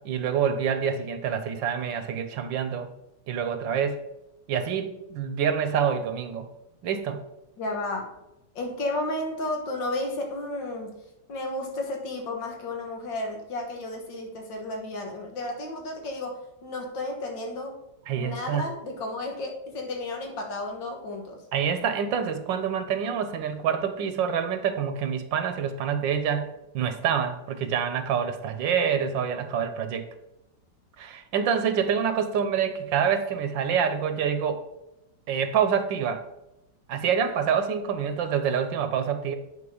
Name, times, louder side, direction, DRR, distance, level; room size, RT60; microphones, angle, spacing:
voice 1, 0.0-2.9 3.3-4.0 4.5-6.5 6.8-7.2 18.1-18.7 21.5-30.1 31.0-34.6 35.3-36.3 36.9-39.4, right 7 dB, 85° right, 9 dB, 1.5 m, -26 dB
voice 2, 7.6-8.1 8.6-11.0 11.3-17.8 18.2-21.4, left 2 dB, 80° left, 2 dB, 2.2 m, -33 dB
8.7 x 4.5 x 5.0 m, 0.88 s
omnidirectional pair, 2.0 m